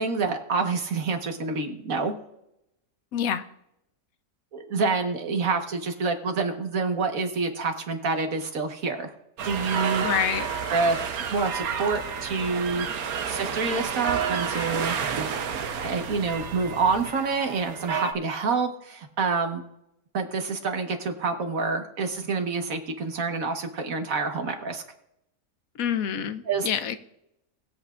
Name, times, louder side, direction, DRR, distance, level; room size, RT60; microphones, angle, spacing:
voice 1, 0.0-2.1 4.5-9.1 9.4-10.1 10.7-12.9 13.3-15.0 15.8-19.6 20.1-24.8 26.5-26.7, right 4 dB, 70° right, 5 dB, 1.6 m, -27 dB
voice 2, 3.1-3.4 10.0-10.5 25.8-27.0, left 8 dB, 75° left, 11 dB, 1.1 m, -27 dB
sound 1, 9.4-18.1, right 7 dB, 90° right, 1.3 m, -30 dB
21.0 x 8.0 x 2.4 m, 0.82 s
omnidirectional pair, 1.5 m